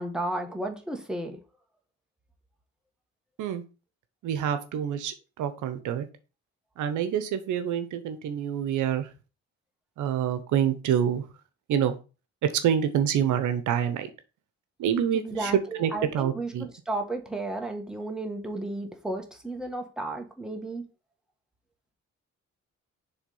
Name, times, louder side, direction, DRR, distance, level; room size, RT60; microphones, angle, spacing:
voice 1, 0.0-1.4 15.1-20.8, right 2 dB, ahead, 1.5 m, -33 dB
voice 2, 4.2-6.1 6.8-9.1 10.0-11.2 11.7-11.9 12.4-14.1 14.8-15.5 15.8-16.7, right 9 dB, 80° right, 0.9 m, -27 dB
7.2 x 3.6 x 5.4 m
cardioid pair, 90°, 30 cm